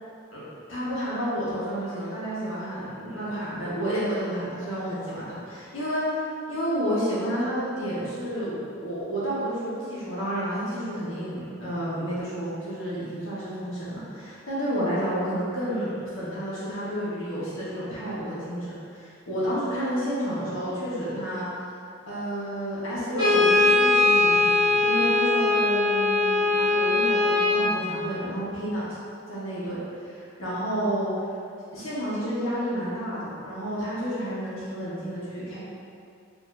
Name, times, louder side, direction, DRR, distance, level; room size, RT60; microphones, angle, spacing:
voice 1, 0.3-6.0 6.5-21.5 22.1-28.9 29.3-31.4 31.7-35.6, equal, 90° left, -9 dB, 1.3 m, -30 dB
Brass instrument, 23.1-27.7, left 2 dB, 20° right, 1.2 m, -21 dB
4.9 x 2.9 x 2.6 m, 2.4 s
head